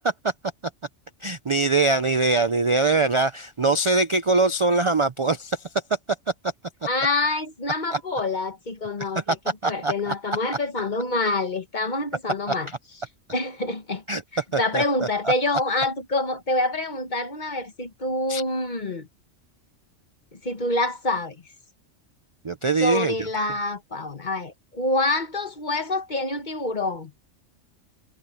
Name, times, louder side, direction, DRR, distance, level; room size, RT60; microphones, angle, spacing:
voice 1, 1.2-5.6 7.9-8.0 9.0-9.4 9.6-10.1 14.1-14.2 14.5-14.8 15.2-15.3 18.3-18.4 22.4-23.3, right 3 dB, 40° right, 0.4 m, -22 dB
voice 2, 6.9-9.2 9.6-12.7 13.3-14.0 14.3-19.1 20.3-21.4 22.8-27.1, left 2 dB, 35° left, 1.5 m, -26 dB
omnidirectional pair, 1.3 m